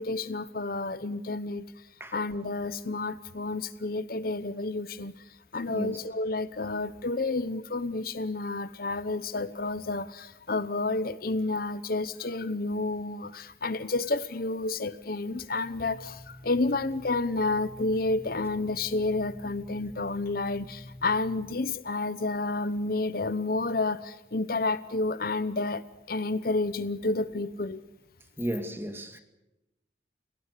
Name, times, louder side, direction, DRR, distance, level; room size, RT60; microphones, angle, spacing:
voice 1, 0.0-1.6 2.1-27.8, left 3 dB, 55° left, 0.9 m, -30 dB
voice 2, 5.7-6.0 28.4-29.2, equal, 15° right, 2.0 m, -34 dB
sound 1, 15.7-21.6, left 1 dB, 35° right, 5.5 m, -48 dB
29.5 x 18.0 x 6.8 m
head